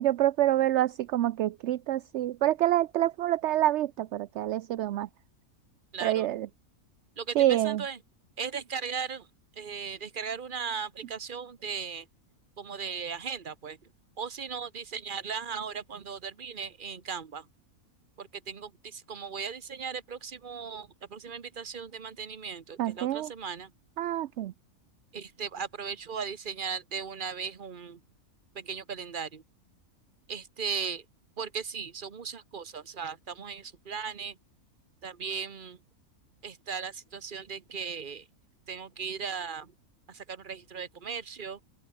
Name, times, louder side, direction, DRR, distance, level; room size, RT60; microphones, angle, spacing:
voice 1, 0.0-5.1 6.0-6.5 7.4-7.8 22.8-23.3 24.0-24.5, right 13 dB, 65° right, 0.7 m, -27 dB
voice 2, 5.9-6.3 7.2-8.0 8.4-9.3 9.6-12.1 12.6-13.8 14.2-17.5 18.2-23.7 25.1-28.0 28.5-29.4 30.3-31.0 31.4-34.4 35.0-35.8 36.4-38.2 38.7-39.7 40.1-41.6, right 6 dB, 35° right, 1.3 m, -37 dB
open air
omnidirectional pair, 1.5 m